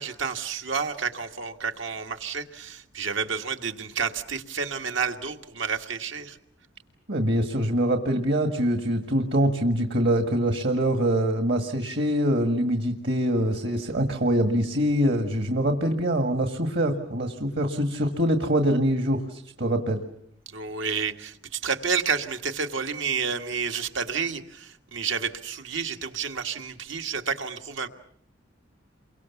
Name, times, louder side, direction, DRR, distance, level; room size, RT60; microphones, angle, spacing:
voice 1, 0.0-6.4 20.5-27.9, right 6 dB, 80° right, 6 dB, 1.7 m, -30 dB
voice 2, 7.1-20.0, equal, 60° right, 7 dB, 1.8 m, -24 dB
28.5 x 24.0 x 7.1 m, 0.66 s
head